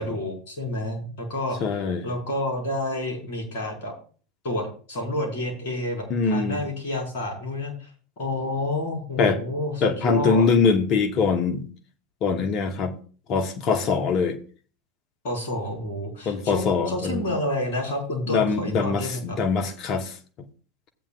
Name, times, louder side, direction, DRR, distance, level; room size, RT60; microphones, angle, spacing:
voice 1, 0.0-3.9 4.4-7.9 8.2-10.5 15.2-19.4, left 1 dB, 60° left, 4.9 m, -29 dB
voice 2, 1.6-2.1 6.1-6.6 9.2-9.4 9.8-11.7 12.2-12.9 13.3-14.4 16.2-17.2 18.3-20.1, left 5 dB, 45° left, 1.2 m, -23 dB
15.0 x 8.8 x 2.5 m
hypercardioid pair, 85°, 0 cm